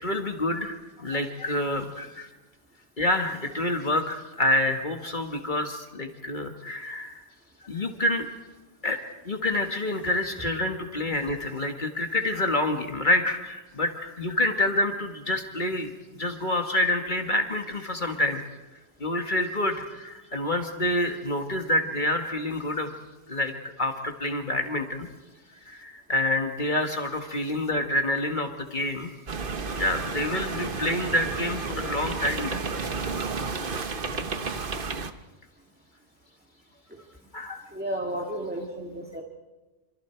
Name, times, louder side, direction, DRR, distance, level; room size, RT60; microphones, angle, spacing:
voice 1, 0.0-2.3 3.0-7.2 7.6-8.3 8.8-9.0 9.3-18.4 19.0-22.9 23.3-25.1 25.7-29.1 29.8-32.6 33.5-33.6 37.3-37.6, left 1 dB, 50° left, 4 dB, 1.8 m, -27 dB
sound 1, 29.3-35.1, right 4 dB, 55° right, 1.3 m, -32 dB
voice 2, 37.7-39.2, right 1 dB, 10° right, 0 dB, 2.3 m, -32 dB
27.0 x 27.0 x 4.5 m, 1.2 s
omnidirectional pair, 1.1 m